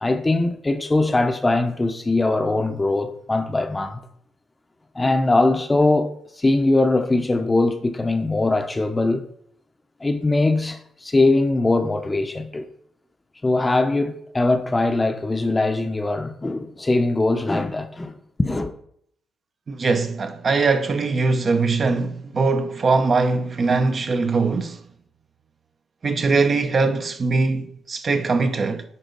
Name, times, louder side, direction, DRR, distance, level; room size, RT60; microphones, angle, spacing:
voice 1, 0.0-4.0 4.9-9.3 10.0-12.7 13.4-18.7, left 2 dB, 20° left, 0.7 m, -21 dB
voice 2, 19.7-24.8 26.0-28.8, right 4 dB, 40° right, 0.7 m, -21 dB
10.0 x 3.9 x 3.9 m
cardioid pair, 90°, 0 cm